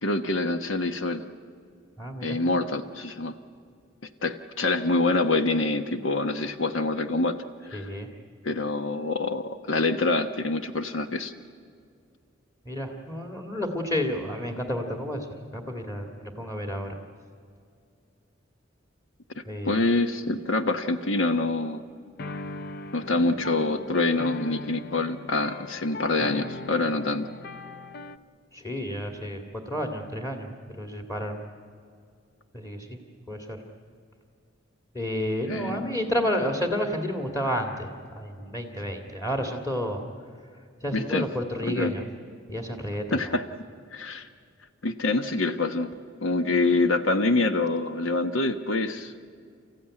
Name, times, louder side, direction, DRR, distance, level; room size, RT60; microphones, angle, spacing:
voice 1, 0.0-1.3 2.2-3.3 4.2-7.4 7.7-7.9 8.4-11.3 19.4-21.8 22.9-27.3 35.5-36.1 40.9-41.3 41.6-41.9 43.1-43.4 43.9-44.3 44.8-45.9 46.2-49.1, left 2 dB, 85° left, 9 dB, 1.1 m, -26 dB
voice 2, 2.0-2.4 7.7-8.1 12.7-15.3 15.5-17.0 19.5-19.7 28.5-30.5 30.8-31.4 32.5-33.0 33.3-33.6 34.9-37.9 38.2-40.0 40.8-42.0 42.5-43.2, equal, 15° left, 4 dB, 2.0 m, -30 dB
sound 1, 22.2-28.2, left 2 dB, 55° left, 0.8 m, -39 dB
29.5 x 15.0 x 9.9 m, 2.2 s
head